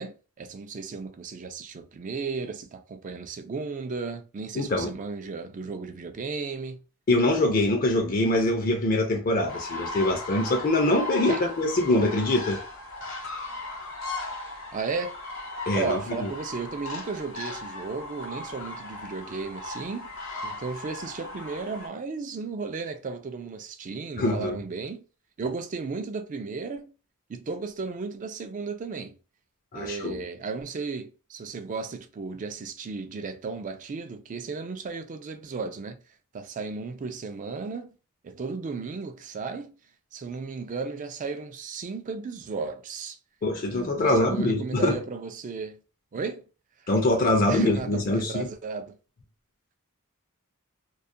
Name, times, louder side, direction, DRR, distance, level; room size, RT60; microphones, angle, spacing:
voice 1, 0.0-6.8 11.3-11.5 14.7-15.2 15.7-20.1 20.4-25.0 25.4-26.9 27.3-29.2 29.7-36.0 36.3-37.9 38.2-39.7 40.1-43.2 43.7-45.8 46.1-46.5 47.5-49.0, right 4 dB, 35° right, 0.3 m, -34 dB
voice 2, 4.6-4.9 7.1-12.6 15.7-16.3 24.2-24.6 29.7-30.2 43.4-45.0 46.9-48.5, left 2 dB, 40° left, 0.5 m, -24 dB
sound 1, 9.5-21.9, left 2 dB, 65° left, 0.9 m, -37 dB
2.3 x 2.1 x 2.6 m
head